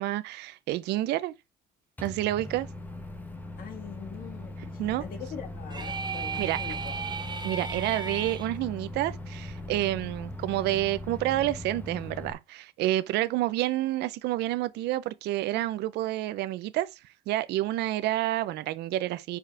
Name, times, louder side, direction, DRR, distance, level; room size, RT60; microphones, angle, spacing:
voice 1, 0.0-1.3 2.0-2.7 4.8-5.0 6.4-6.6 7.4-16.9 17.3-19.4, right 15 dB, 80° right, 0.6 m, -29 dB
Microwave oven, 2.0-12.3, left 1 dB, 10° left, 1.0 m, -40 dB
voice 2, 3.6-6.9, left 7 dB, 60° left, 1.7 m, -43 dB
sound 1, 5.7-8.5, right 5 dB, 25° right, 0.8 m, -35 dB
5.1 x 4.6 x 4.6 m
cardioid pair, 110°, 17 cm